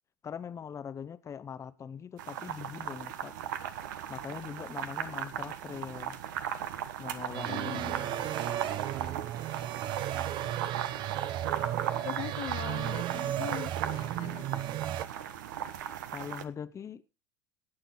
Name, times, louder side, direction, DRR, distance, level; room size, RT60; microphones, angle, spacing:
voice 1, 0.2-3.3 4.1-6.2 7.0-8.2 16.1-17.0, left 7 dB, 30° left, 0.8 m, -42 dB
sound 1, 2.2-16.4, right 10 dB, 75° right, 1.2 m, -38 dB
sound 2, 7.3-15.0, right 12 dB, 50° right, 0.8 m, -34 dB
voice 2, 7.5-7.9 12.0-14.5, left 16 dB, 60° left, 0.8 m, -41 dB
18.5 x 7.1 x 3.9 m
hypercardioid pair, 80°, 10 cm